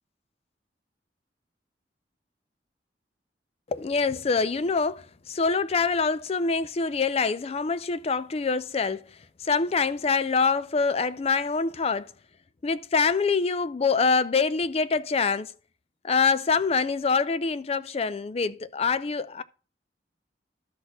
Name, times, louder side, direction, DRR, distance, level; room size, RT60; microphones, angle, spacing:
voice 1, 3.7-9.1 9.4-12.1 12.6-15.5 16.0-19.4, left 4 dB, 35° left, 0.4 m, -25 dB
12.0 x 4.3 x 6.1 m
head